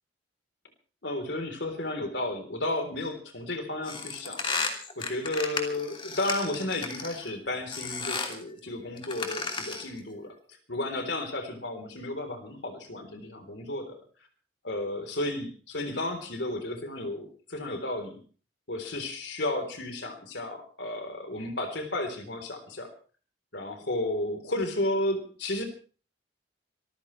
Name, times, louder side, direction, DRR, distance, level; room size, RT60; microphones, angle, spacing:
voice 1, 1.0-4.5 5.0-10.4 10.7-14.0 14.6-18.2 18.7-22.9 23.5-25.6, left 1 dB, 75° left, 6 dB, 3.7 m, -33 dB
sound 1, 3.8-7.3 7.7-8.4 9.0-10.0, left 4 dB, 30° left, 2.9 m, -34 dB
25.5 x 15.0 x 3.3 m, 0.40 s
head